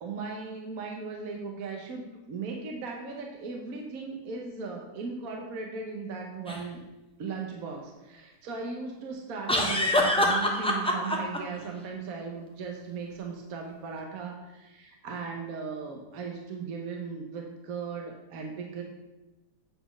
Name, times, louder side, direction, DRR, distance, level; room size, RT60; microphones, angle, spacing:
voice 1, 0.0-6.8 7.2-18.8, right 4 dB, 60° right, 1 dB, 1.4 m, -37 dB
sound 1, 6.5-6.6 9.5-11.4, left 1 dB, 5° left, 0.6 m, -25 dB
8.2 x 4.3 x 6.0 m, 1.0 s
omnidirectional pair, 1.8 m